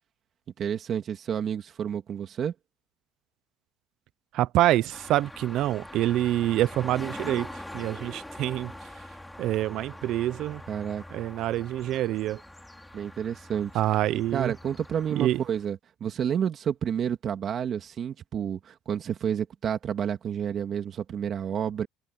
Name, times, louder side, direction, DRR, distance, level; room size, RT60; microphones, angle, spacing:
voice 1, 0.6-2.5 10.7-11.0 12.9-13.7 14.1-21.9, right 8 dB, 35° right, 2.3 m, -30 dB
voice 2, 4.3-8.7 9.4-10.6 11.1-12.4 13.7-14.5 15.2-15.4, right 14 dB, 50° right, 0.5 m, -26 dB
sound 1, 4.9-15.7, left 1 dB, 5° left, 3.2 m, -43 dB
cardioid pair, 155°, 0 cm